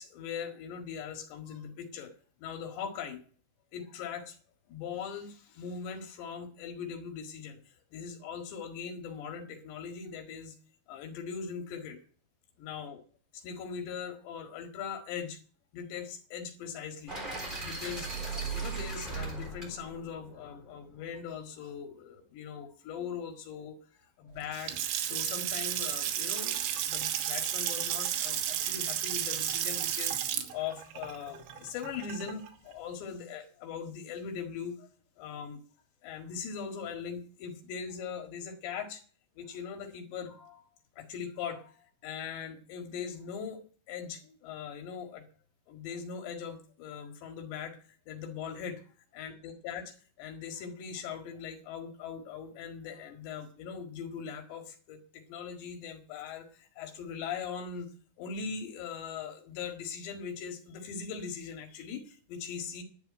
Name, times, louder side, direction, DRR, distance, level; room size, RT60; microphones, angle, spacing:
voice 1, 0.0-2.1 2.4-3.2 3.7-4.4 4.7-7.6 7.9-10.6 10.9-12.0 12.6-13.0 13.3-15.4 15.7-17.2 17.6-24.7 25.0-34.9 35.2-35.6 36.0-39.0 39.4-40.6 41.0-43.6 43.9-45.2 45.7-47.8 48.1-48.8 49.2-57.9 58.2-62.8, left 7 dB, 75° left, 4 dB, 4.0 m, -40 dB
sound 1, 17.1-21.1, right 4 dB, 10° right, 3.4 m, -38 dB
Water tap faucet / Sink (filling or washing) / Splash splatter, 24.4-32.5, right 10 dB, 85° right, 3.6 m, -33 dB
11.5 x 6.9 x 9.7 m, 0.43 s
omnidirectional pair, 5.2 m